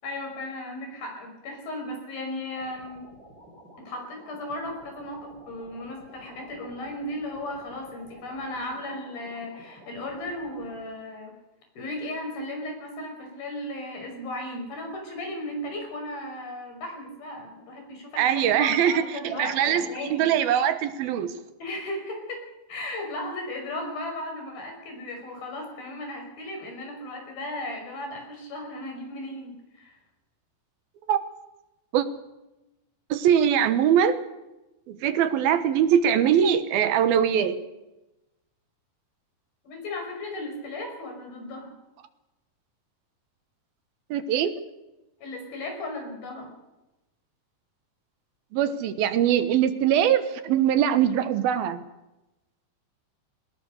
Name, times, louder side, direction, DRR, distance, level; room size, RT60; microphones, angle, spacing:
voice 1, 0.0-3.0 3.8-11.3 11.8-20.3 21.6-22.4 22.7-30.0 39.6-41.7 45.2-46.5, left 1 dB, 85° left, 3 dB, 7.5 m, -36 dB
sound 1, 2.5-10.8, equal, 30° right, 5.7 m, -51 dB
voice 2, 18.2-21.3 31.1-31.2 31.9-32.1 33.1-34.2 34.9-37.6 44.1-44.5 48.5-51.8, right 9 dB, 85° right, 11 dB, 3.2 m, -22 dB
22.0 x 19.5 x 6.6 m, 0.97 s
omnidirectional pair, 4.1 m